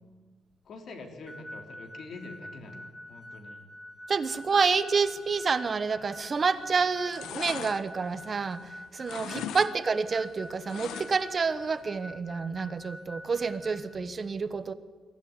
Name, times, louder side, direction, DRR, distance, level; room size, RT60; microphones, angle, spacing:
voice 1, 0.6-3.6 9.2-9.4, left 3 dB, 55° left, 4 dB, 3.3 m, -45 dB
sound 1, 1.3-14.0, equal, 5° left, 1.1 m, -46 dB
voice 2, 4.1-14.7, right 5 dB, 30° right, 12 dB, 1.0 m, -28 dB
sound 2, 6.3-6.6 6.9-8.7 9.0-9.7 10.0-11.4 11.7-11.8, left 10 dB, 90° left, 1.1 m, -40 dB
24.0 x 14.5 x 9.7 m, 1.4 s
cardioid pair, 140°, 0 cm